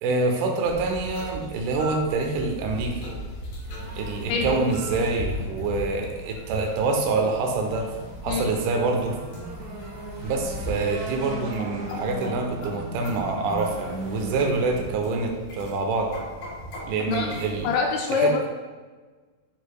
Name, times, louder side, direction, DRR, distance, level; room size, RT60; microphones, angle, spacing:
voice 1, 0.0-3.1 4.0-7.9 8.2-9.2 10.2-16.1 16.9-17.7 18.2-18.3, right 3 dB, 80° right, 2 dB, 3.2 m, -26 dB
sound 1, 0.6-17.8, equal, 55° left, 2.4 m, -38 dB
sound 2, 3.7-15.0, right 1 dB, 65° right, 2.0 m, -39 dB
voice 2, 4.3-4.6 8.3-8.6 17.1-17.3 17.6-18.5, left 4 dB, 80° left, 0 dB, 2.6 m, -24 dB
11.5 x 4.5 x 2.2 m, 1.4 s
omnidirectional pair, 5.5 m